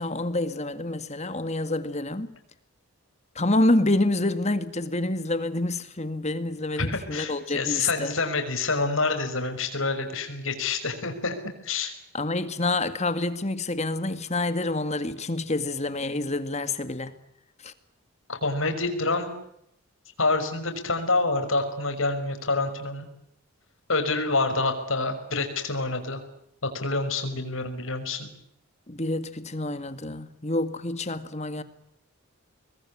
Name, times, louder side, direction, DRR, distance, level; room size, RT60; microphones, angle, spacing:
voice 1, 0.0-2.3 3.4-8.1 12.1-17.1 17.6-17.7 28.9-31.6, left 2 dB, 30° left, 1.9 m, -27 dB
voice 2, 6.8-11.4 11.6-11.9 18.3-19.3 20.2-23.1 23.9-26.2 26.6-28.3, left 3 dB, 65° left, 5.8 m, -27 dB
27.0 x 21.0 x 9.8 m
head